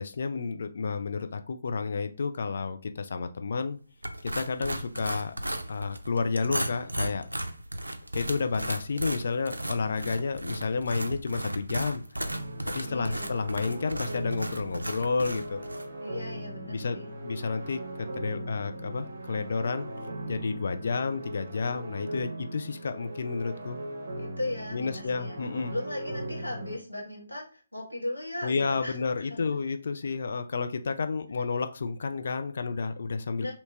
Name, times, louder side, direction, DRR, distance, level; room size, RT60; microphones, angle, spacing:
voice 1, 0.0-3.8 4.2-5.3 5.7-7.3 8.1-12.0 12.7-15.6 16.7-19.9 20.3-23.8 24.7-25.8 28.4-33.5, left 4 dB, 55° left, 8 dB, 0.4 m, -31 dB
sound 1, 4.0-15.9, right 1 dB, 80° right, 0.4 m, -35 dB
sound 2, 12.3-26.8, right 1 dB, 55° right, 0.8 m, -39 dB
voice 2, 12.9-13.3 16.0-17.1 24.2-25.4 25.7-29.4 33.4-33.5, left 1 dB, 90° left, -3 dB, 1.4 m, -37 dB
2.8 x 2.8 x 3.3 m, 0.36 s
figure-of-eight pair, 140°, 0 cm